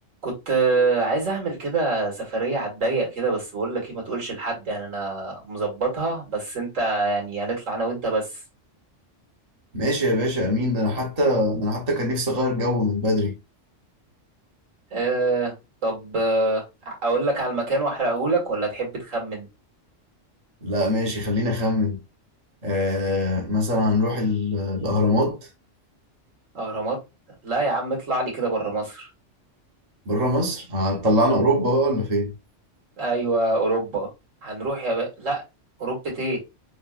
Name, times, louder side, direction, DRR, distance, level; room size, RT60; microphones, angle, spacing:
voice 1, 0.2-8.4 14.9-15.5 15.8-19.5 26.5-27.0 27.4-29.1 33.0-34.1 34.4-35.4 35.8-36.4, right 3 dB, 85° right, 2.2 m, -25 dB
voice 2, 9.7-13.3 20.6-22.0 22.6-25.4 30.1-32.3, left 1 dB, 30° right, 1.1 m, -23 dB
6.5 x 2.5 x 2.4 m
omnidirectional pair, 1.3 m